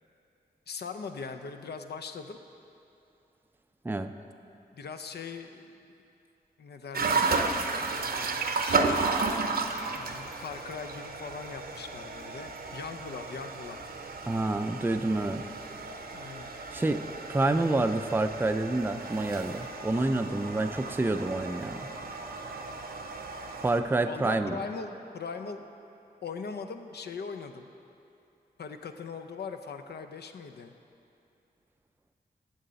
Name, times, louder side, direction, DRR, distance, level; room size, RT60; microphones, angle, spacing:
voice 1, 0.7-2.4 4.7-5.7 6.6-7.4 8.6-9.4 9.9-13.9 16.1-16.5 23.9-25.6 26.2-27.7 28.6-30.7, left 5 dB, 75° left, 6 dB, 0.5 m, -40 dB
sound 1, 6.9-23.8, right 4 dB, 60° right, 0.7 m, -33 dB
voice 2, 14.3-15.4 16.7-17.0 17.3-21.9 23.6-24.6, right 2 dB, 10° right, 7 dB, 0.4 m, -28 dB
8.9 x 6.4 x 6.8 m, 2.7 s
cardioid pair, 65°, 17 cm